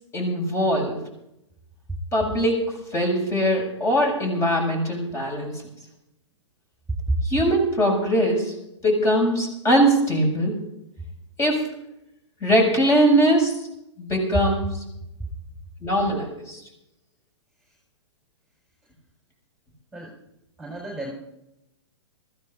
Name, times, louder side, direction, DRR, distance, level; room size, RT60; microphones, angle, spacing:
voice 1, 0.1-1.0 2.1-5.6 7.2-8.5 8.8-10.6 11.4-11.6 12.4-13.7 14.0-14.8 15.8-16.6, equal, 20° left, 0 dB, 6.5 m, -21 dB
voice 2, 20.6-21.1, right 1 dB, ahead, -3 dB, 4.6 m, -28 dB
25.0 x 15.0 x 2.6 m, 0.83 s
figure-of-eight pair, 115°, 15 cm